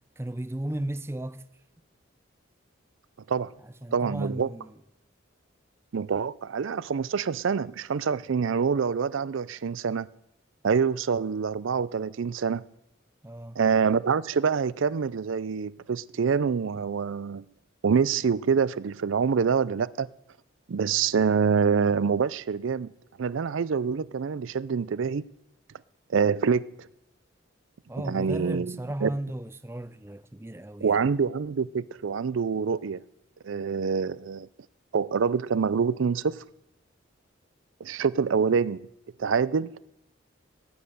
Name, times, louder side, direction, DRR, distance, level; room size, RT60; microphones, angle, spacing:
voice 1, 0.2-1.5 3.6-4.7 13.2-13.6 27.9-31.0, right 1 dB, 10° right, 0.4 m, -35 dB
voice 2, 3.9-4.5 5.9-10.1 10.6-12.7 13.6-17.4 17.8-20.1 20.7-22.9 23.2-25.3 26.1-26.7 28.0-29.1 30.8-33.0 33.4-34.5 34.9-36.4 37.8-38.8 39.2-39.7, right 6 dB, 70° right, 0.4 m, -26 dB
18.0 x 9.9 x 6.7 m
head